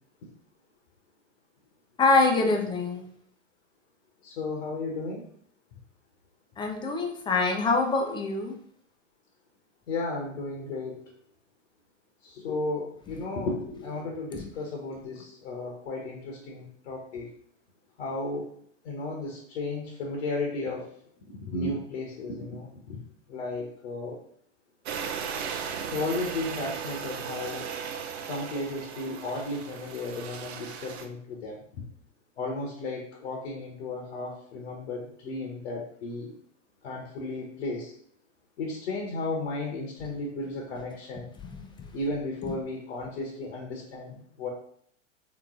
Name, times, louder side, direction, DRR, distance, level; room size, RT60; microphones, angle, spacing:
voice 1, 2.0-3.1 6.6-8.5 14.3-14.4 42.4-42.5, left 3 dB, 15° left, 3 dB, 0.5 m, -24 dB
voice 2, 4.2-5.2 9.9-11.1 12.2-17.3 18.0-18.5 18.8-20.9 21.3-23.0 23.3-24.2 25.8-27.7 28.2-31.6 32.4-36.3 36.8-37.9 38.6-41.3 41.9-44.5, left 2 dB, 60° left, -1 dB, 1.1 m, -34 dB
sound 1, 24.9-31.1, right 7 dB, 55° right, 0.6 m, -36 dB
3.6 x 3.1 x 3.7 m, 0.64 s
hypercardioid pair, 100°, 38 cm